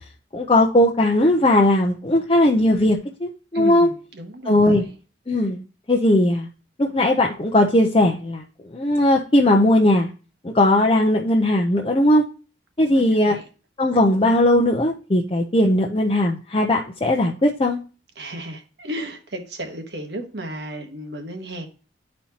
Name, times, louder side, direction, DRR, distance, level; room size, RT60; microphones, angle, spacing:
voice 1, 0.3-3.9 4.5-4.8 5.3-5.6 5.9-6.5 6.8-8.4 8.7-10.1 10.4-12.2 12.8-13.4 13.8-17.8, left 1 dB, 30° left, 0 dB, 0.6 m, -18 dB
voice 2, 3.5-4.9 12.8-13.5 18.2-21.7, right 1 dB, 65° right, 5 dB, 1.2 m, -34 dB
11.5 x 4.3 x 2.8 m, 0.35 s
head